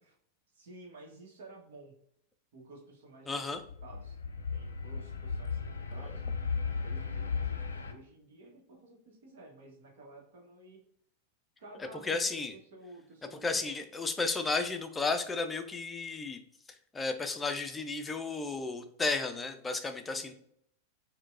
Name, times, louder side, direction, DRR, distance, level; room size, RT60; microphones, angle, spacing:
voice 1, 0.6-2.0 2.5-3.4 3.8-6.2 6.7-10.8 11.6-13.7 20.1-20.3, right 2 dB, 55° right, 0 dB, 1.0 m, -53 dB
voice 2, 3.3-3.6 6.0-6.2 11.8-12.5 13.3-16.4 16.9-20.3, left 3 dB, 15° left, 7 dB, 0.4 m, -33 dB
sound 1, 3.6-7.9, left 5 dB, 75° left, 0.5 m, -35 dB
4.4 x 2.2 x 2.4 m, 0.68 s
figure-of-eight pair, 90°, 0 cm